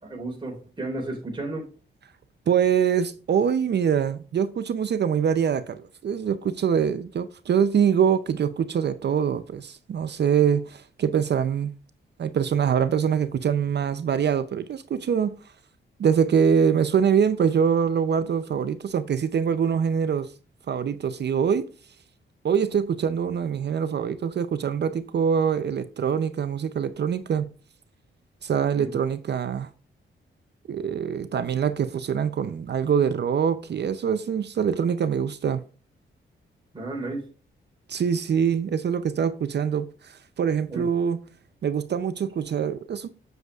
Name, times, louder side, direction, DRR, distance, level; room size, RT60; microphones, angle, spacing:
voice 1, 0.0-1.7 28.8-28.9 36.7-37.2 40.7-40.8, right 2 dB, 25° right, 3.8 m, -33 dB
voice 2, 2.5-11.7 12.2-15.4 16.0-20.3 20.7-21.7 22.4-27.5 28.4-29.7 30.7-35.6 37.9-41.2 41.6-43.1, right 7 dB, 55° right, 0.6 m, -24 dB
7.9 x 7.8 x 2.4 m
cardioid pair, 80°, 21 cm